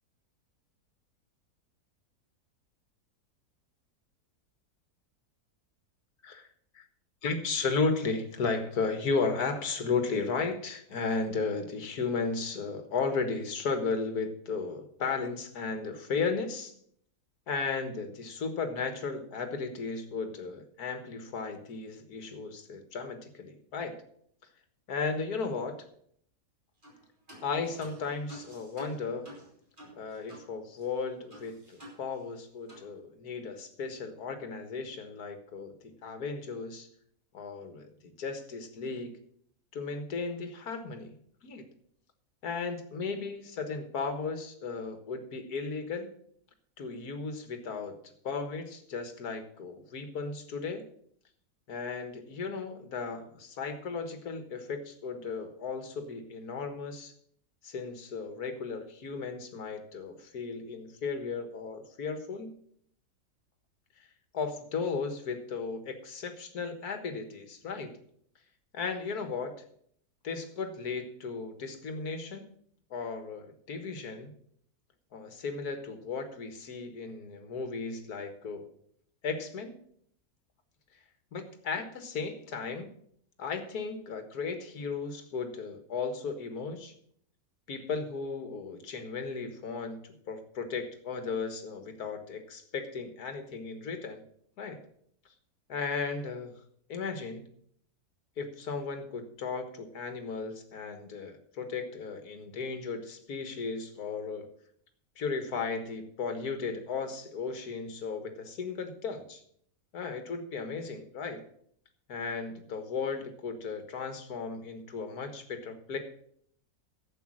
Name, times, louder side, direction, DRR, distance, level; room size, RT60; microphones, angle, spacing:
voice 1, 7.2-16.7 17.5-23.9 24.9-25.7 27.4-29.3 30.0-35.7 36.0-36.9 37.3-39.2 39.7-41.1 41.4-41.6 42.4-46.1 46.8-50.8 51.7-57.1 57.6-62.5 64.0-64.1 64.3-67.9 68.7-69.5 70.2-72.5 72.9-74.3 75.1-78.6 79.2-79.8 81.3-82.9 83.4-86.9 87.7-90.0 90.3-94.2 94.6-94.8 95.7-96.5 96.9-97.5 98.4-104.5 105.2-109.4 109.9-111.4 112.1-116.0, left 4 dB, 75° left, 7 dB, 2.0 m, -35 dB
sound 1, 26.8-27.0 27.3-30.5 30.8-30.9 31.3-32.4 32.7-32.9, equal, 30° right, 3.4 m, -50 dB
11.5 x 8.0 x 6.4 m, 0.64 s
omnidirectional pair, 1.6 m